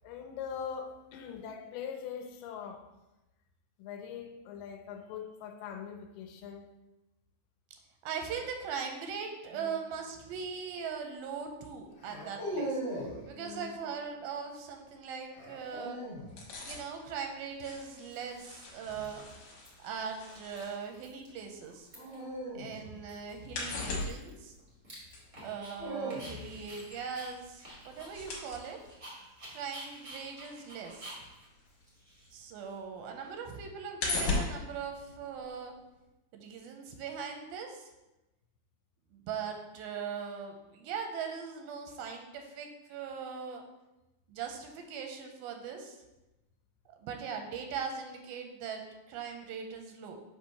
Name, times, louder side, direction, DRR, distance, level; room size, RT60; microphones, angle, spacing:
voice 1, 0.0-2.9 3.8-6.8 9.5-9.8 13.4-13.7, left 7 dB, 80° left, 5 dB, 2.1 m, -42 dB
voice 2, 8.0-12.8 13.3-16.0 16.6-19.2 19.8-21.9 22.5-24.6 25.4-28.8 29.5-31.2 32.3-35.8 36.3-37.9 39.1-43.6 44.3-46.0 46.9-50.2, right 6 dB, 85° right, 4 dB, 2.4 m, -40 dB
sound 1, 10.1-10.5 12.0-13.2 15.3-16.3 18.8-19.2 21.9-24.3 25.4-26.7, right 1 dB, 45° left, 1.6 m, -40 dB
sound 2, 16.2-22.3 22.6-32.3 32.7-35.8 36.1-36.2, left 3 dB, 60° left, 2.1 m, -40 dB
Dog, 17.4-17.5 18.1-18.6 18.9-19.7 20.0-20.1 20.3-21.4 21.6-22.3 22.7-22.8 23.1-25.8 26.1-32.7, right 1 dB, 70° right, 0.7 m, -50 dB
6.3 x 2.8 x 5.7 m, 0.97 s
omnidirectional pair, 4.2 m